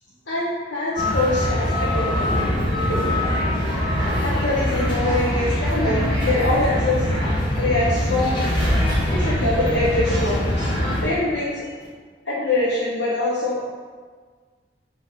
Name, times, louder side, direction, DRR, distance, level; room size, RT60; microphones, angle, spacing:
voice 1, 0.3-2.4 2.9-3.1 4.2-7.1 7.6-8.5 9.1-11.7 12.2-13.6, left 2 dB, 70° left, -8 dB, 1.1 m, -24 dB
sound 1, 1.0-11.0, left 1 dB, 25° left, 1.2 m, -22 dB
6.1 x 3.1 x 5.7 m, 1.5 s
head